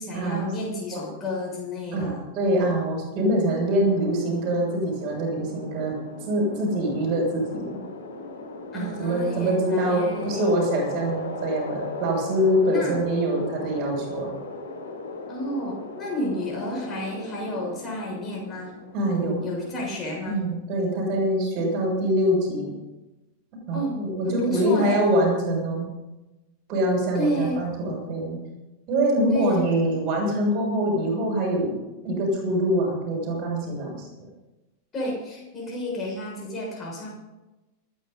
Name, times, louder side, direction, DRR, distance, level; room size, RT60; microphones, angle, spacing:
voice 1, 0.0-2.3 8.7-10.5 12.7-13.0 15.3-18.7 19.4-20.4 23.7-24.0 24.3-25.0 27.1-27.6 29.3-29.7 34.9-37.1, left 1 dB, 25° left, -2 dB, 6.6 m, -31 dB
voice 2, 1.9-5.9 6.2-7.6 8.7-14.3 18.9-19.5 20.3-22.7 23.5-25.9 26.7-28.4 28.9-31.7 32.0-34.3, right 1 dB, 40° right, 0 dB, 7.1 m, -24 dB
sound 1, 3.8-20.1, left 3 dB, 70° left, 5.0 m, -38 dB
28.0 x 9.5 x 4.1 m, 1.1 s
figure-of-eight pair, 90°, 0 cm